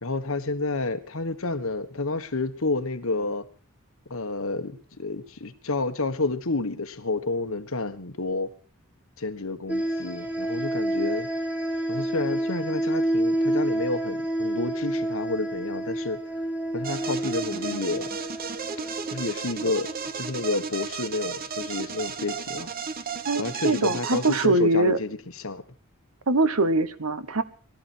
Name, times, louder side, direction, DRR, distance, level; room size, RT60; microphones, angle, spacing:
voice 1, 0.0-3.5 4.1-8.5 9.2-11.3 11.9-16.2 16.7-18.1 19.1-22.7 23.4-25.6, left 3 dB, 70° left, 1.5 m, -30 dB
sound 1, 9.7-20.1, right 1 dB, 5° right, 2.2 m, -29 dB
sound 2, 16.8-24.5, right 5 dB, 45° right, 1.0 m, -34 dB
voice 2, 23.3-25.0 26.3-27.4, right 2 dB, 85° right, 1.2 m, -23 dB
20.5 x 13.0 x 4.5 m
head